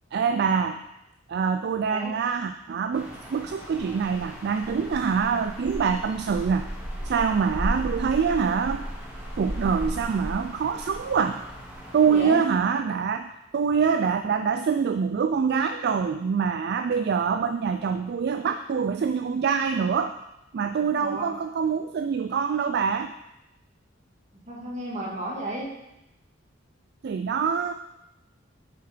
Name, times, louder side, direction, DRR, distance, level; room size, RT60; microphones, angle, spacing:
voice 1, 0.1-0.8 1.3-6.7 7.0-8.9 9.4-11.4 11.9-20.2 20.5-23.1 27.0-27.7, right 6 dB, 55° right, 8 dB, 0.4 m, -25 dB
sound 1, 2.9-12.3, equal, 5° right, 1.9 m, -35 dB
voice 2, 12.0-12.4 21.0-21.3 24.3-25.7, right 1 dB, 40° right, -2 dB, 1.8 m, -33 dB
7.3 x 5.7 x 5.0 m, 0.89 s
head